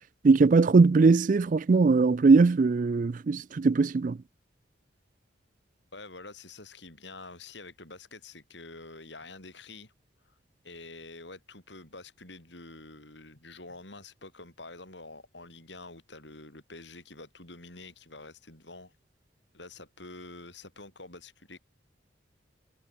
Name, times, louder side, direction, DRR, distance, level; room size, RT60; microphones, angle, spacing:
voice 1, 0.2-4.2, right 4 dB, 45° right, 0.4 m, -20 dB
voice 2, 5.9-9.9 10.3-10.4 10.6-18.9 19.5-21.6, left 3 dB, 70° left, 7.1 m, -47 dB
head